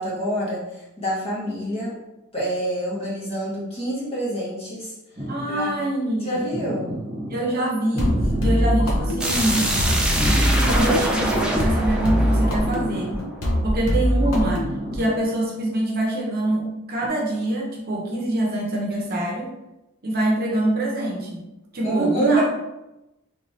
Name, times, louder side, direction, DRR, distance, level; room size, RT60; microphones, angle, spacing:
voice 1, 0.0-2.0 2.3-4.9 5.5-5.8 6.2-6.9 21.8-22.4, right 1 dB, 30° left, -7 dB, 1.4 m, -26 dB
sound 1, 5.2-5.6 6.5-7.4 7.9-9.1 9.9-11.0 11.9-13.2 14.2-15.1 17.0-17.1, right 1 dB, 25° right, 1.2 m, -30 dB
voice 2, 5.3-6.4 7.3-9.7 10.7-13.1 13.6-14.7 14.9-19.5 20.0-21.4 21.7-22.4, right 1 dB, 45° right, -2 dB, 0.8 m, -24 dB
sound 2, 8.0-15.1, equal, 75° left, 0.7 m, -23 dB
sound 3, 9.2-13.9, right 1 dB, 5° right, 0.4 m, -25 dB
3.5 x 3.1 x 2.8 m, 0.93 s
head